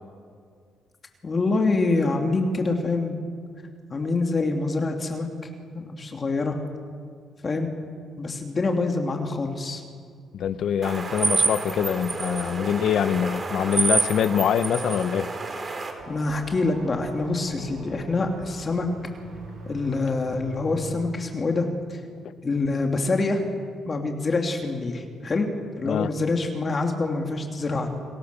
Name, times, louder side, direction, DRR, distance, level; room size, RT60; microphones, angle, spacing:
voice 1, 1.2-3.2 3.9-5.3 5.7-6.5 7.4-7.7 8.2-9.8 16.1-18.9 19.7-22.0 22.4-23.4 23.9-25.5 25.8-27.9, left 3 dB, 35° left, 3 dB, 2.9 m, -25 dB
voice 2, 10.3-15.3 25.9-26.1, left 8 dB, 70° left, 12 dB, 1.2 m, -24 dB
sound 1, 10.8-15.9, right 4 dB, 35° right, 3.9 m, -28 dB
sound 2, 16.0-21.0, right 3 dB, 80° right, 7.4 m, -41 dB
30.0 x 22.5 x 7.0 m, 2.2 s
cardioid pair, 90°, 0 cm